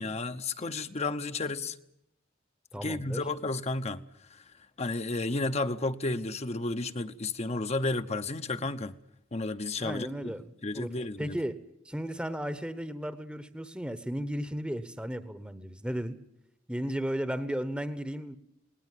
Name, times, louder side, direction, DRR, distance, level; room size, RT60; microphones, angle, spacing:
voice 1, 0.0-1.8 2.8-4.0 4.3-4.4 4.8-8.9 9.3-10.3 10.6-11.4, left 2 dB, 35° left, 0.8 m, -32 dB
voice 2, 2.7-3.2 9.8-10.9 11.2-11.6 11.8-16.2 16.7-18.4, equal, 5° right, 1.0 m, -34 dB
19.5 x 19.0 x 9.3 m
head